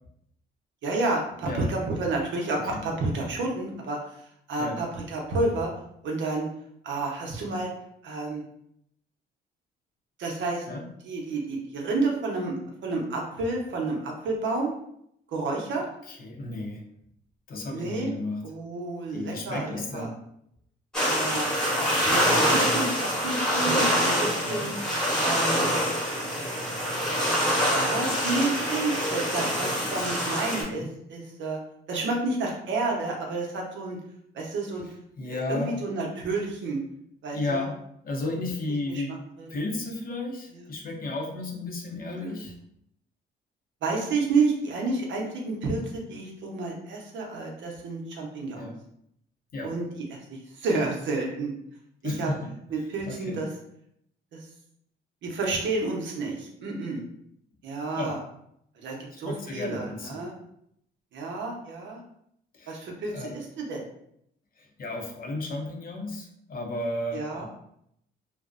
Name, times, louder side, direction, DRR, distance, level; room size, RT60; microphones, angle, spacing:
voice 1, 0.8-5.7 6.0-6.5 6.8-7.7 8.0-8.4 10.2-10.7 11.0-12.5 12.8-14.7 15.3-15.8 17.7-18.1 18.4-20.1 21.0-21.5 21.9-24.7 25.1-25.6 26.2-26.6 27.7-31.6 31.9-34.0 34.3-34.9 35.2-36.8 37.2-37.6 38.3-38.4 38.9-39.0 39.4-39.5 42.0-42.4 43.8-48.7 49.6-51.5 52.0-52.3 52.7-53.5 54.3-54.5 55.2-57.0 57.6-58.2 58.8-60.3 61.1-62.0 62.7-63.9 67.1-67.5, right 3 dB, 70° right, -1 dB, 0.7 m, -30 dB
voice 2, 16.1-16.9 17.5-18.5 19.1-20.2 24.4-24.8 29.5-29.6 29.9-30.0 30.7-30.9 35.2-35.8 37.3-37.8 38.0-39.2 39.5-42.5 48.6-48.8 49.5-49.7 52.0-52.5 53.1-53.4 58.0-58.2 59.1-60.2 62.5-62.8 63.1-63.4 64.6-67.5, left 2 dB, 45° left, 1 dB, 0.6 m, -33 dB
sound 1, 20.9-30.6, equal, 5° left, 1.0 m, -25 dB
2.5 x 2.0 x 2.4 m, 0.74 s
cardioid pair, 90°, 20 cm